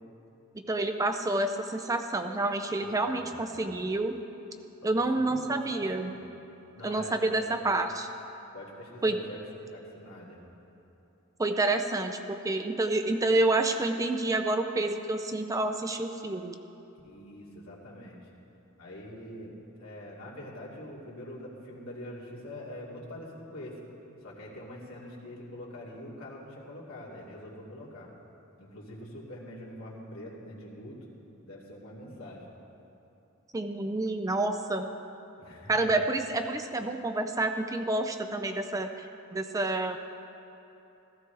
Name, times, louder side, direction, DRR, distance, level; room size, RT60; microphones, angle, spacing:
voice 1, 0.7-4.2 4.8-6.1 6.8-8.1 9.0-9.2 11.4-16.6 33.5-34.9 35.7-39.1 39.3-40.0, right 2 dB, 15° right, 6 dB, 0.4 m, -28 dB
voice 2, 2.8-3.7 4.8-6.1 6.7-7.7 8.5-9.4 9.7-10.4 17.0-18.3 18.8-23.8 24.2-28.1 28.6-31.0 31.4-32.5 35.4-35.9, left 1 dB, 70° left, -5 dB, 2.5 m, -44 dB
15.5 x 14.5 x 3.4 m, 3.0 s
head